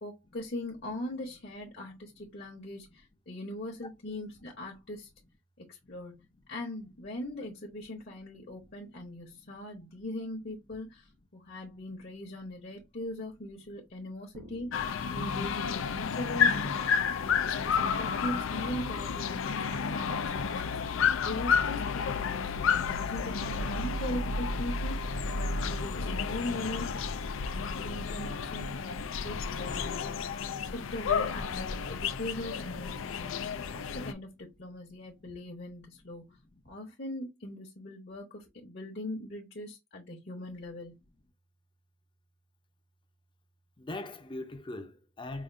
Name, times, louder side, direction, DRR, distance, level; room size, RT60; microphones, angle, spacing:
voice 1, 0.0-5.1 5.6-6.2 6.5-16.9 17.4-20.8 21.2-27.0 27.4-30.1 30.7-33.4 33.7-36.4 36.7-41.0, left 1 dB, 50° left, 0.9 m, -40 dB
sound 1, 14.3-20.6, right 1 dB, 90° right, 1.1 m, -54 dB
sound 2, 14.7-34.1, left 6 dB, 80° left, 0.4 m, -31 dB
voice 2, 43.8-45.4, left 2 dB, 25° left, 0.6 m, -43 dB
4.9 x 2.5 x 2.5 m
head